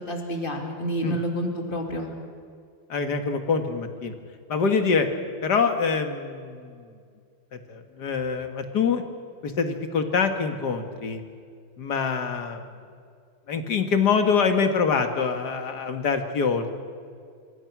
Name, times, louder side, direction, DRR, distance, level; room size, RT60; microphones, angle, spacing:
voice 1, 0.0-2.1, equal, 25° left, 2 dB, 3.2 m, -29 dB
voice 2, 2.9-4.1 4.5-5.1 5.4-6.8 7.7-9.0 9.4-11.2 11.8-12.6 13.5-16.7, left 5 dB, 55° left, 7 dB, 2.3 m, -25 dB
25.5 x 24.5 x 6.1 m, 2.2 s
omnidirectional pair, 2.2 m